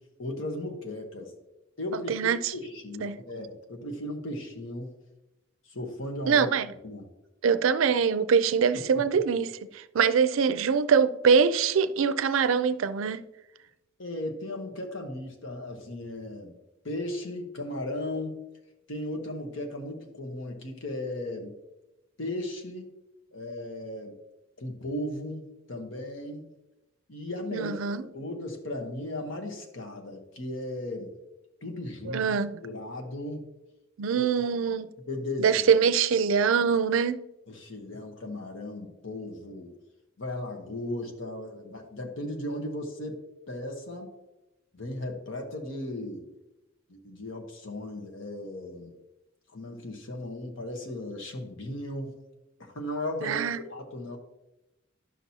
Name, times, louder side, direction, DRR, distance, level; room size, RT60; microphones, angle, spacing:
voice 1, 0.2-1.3 1.8-2.1 2.5-4.9 5.7-6.5 6.8-7.1 8.7-9.2 14.0-16.6 16.8-18.4 18.9-21.5 22.2-22.9 23.3-24.2 24.6-26.5 27.1-27.8 28.1-31.1 31.6-32.4 32.6-33.5 34.1-34.2 35.1-35.5 37.5-39.7 40.2-43.2 43.5-44.1 44.7-46.3 46.9-48.9 49.5-52.2 52.6-54.2, left 1 dB, 75° left, 1.2 m, -36 dB
voice 2, 2.1-2.5 3.0-3.2 6.3-6.7 7.4-13.2 27.5-28.0 32.1-32.5 34.0-34.9 35.4-37.2 53.2-53.6, right 6 dB, 85° right, 0.4 m, -24 dB
11.0 x 6.0 x 2.8 m
head